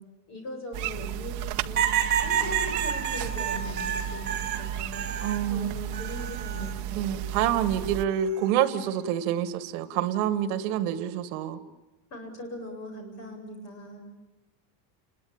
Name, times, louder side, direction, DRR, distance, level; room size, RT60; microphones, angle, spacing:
voice 1, 0.3-1.8 2.2-5.0 5.5-7.2 12.1-14.0, left 1 dB, 35° left, 4 dB, 7.8 m, -40 dB
sound 1, 0.7-8.0, right 12 dB, 40° right, 1.0 m, -34 dB
sound 2, 1.8-5.5 5.9-6.7 8.1-8.5, right 8 dB, 20° right, 3.2 m, -29 dB
voice 2, 5.2-5.7 6.9-11.6, right 10 dB, 70° right, 12 dB, 1.9 m, -27 dB
29.5 x 22.0 x 8.8 m, 1.0 s
cardioid pair, 180°, 46 cm